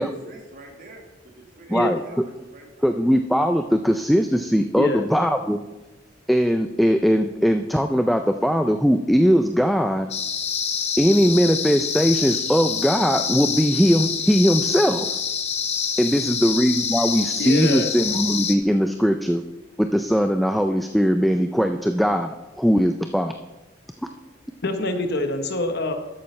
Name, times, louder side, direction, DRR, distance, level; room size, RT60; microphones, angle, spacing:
voice 1, 0.0-3.0, right 2 dB, 50° right, 1 dB, 1.8 m, -44 dB
voice 2, 2.8-5.6 6.3-10.1 11.0-15.1 16.0-19.4 19.8-23.3, equal, ahead, 6 dB, 0.3 m, -20 dB
sound 1, 10.1-18.6, left 7 dB, 35° left, 0.8 m, -26 dB
voice 3, 17.4-17.9 24.6-25.9, left 1 dB, 60° left, 6 dB, 1.0 m, -25 dB
12.5 x 8.7 x 3.2 m, 1.0 s
head